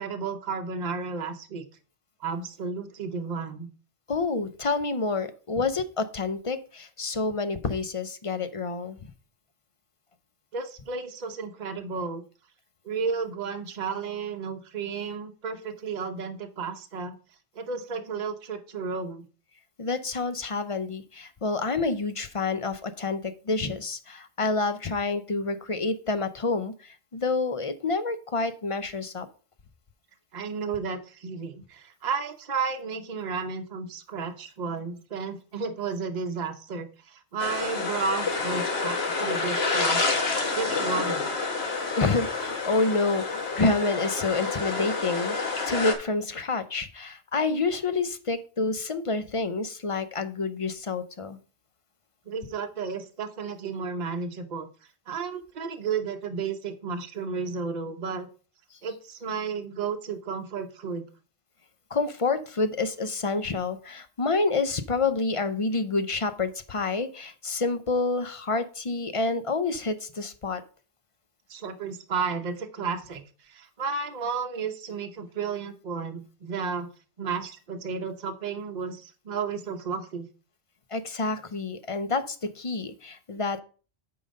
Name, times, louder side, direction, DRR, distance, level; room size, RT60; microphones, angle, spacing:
voice 1, 0.0-1.6 2.2-3.7 10.5-12.2 12.8-17.1 17.5-19.3 30.3-40.1 40.6-41.3 52.3-54.7 55.1-58.3 58.8-61.1 71.5-76.9 77.2-80.3, right 5 dB, 45° right, 5 dB, 0.9 m, -32 dB
voice 2, 4.1-9.0 19.8-26.7 27.1-29.3 42.0-51.4 61.9-70.6 80.9-83.6, left 3 dB, 35° left, 11 dB, 0.6 m, -28 dB
sound 1, 37.4-45.9, left 3 dB, 65° left, 1.6 m, -28 dB
8.8 x 3.9 x 5.3 m, 0.38 s
omnidirectional pair, 1.1 m